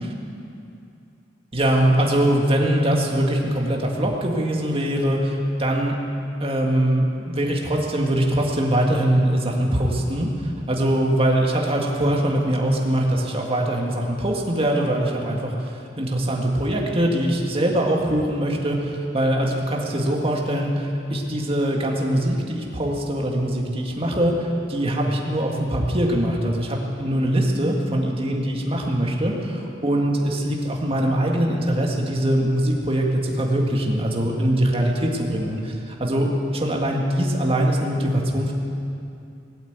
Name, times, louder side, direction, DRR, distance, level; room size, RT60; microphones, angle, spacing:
voice 1, 1.5-6.0 6.4-29.6 29.8-38.5, right 1 dB, 30° right, -1 dB, 2.0 m, -22 dB
19.5 x 8.7 x 8.1 m, 2.6 s
head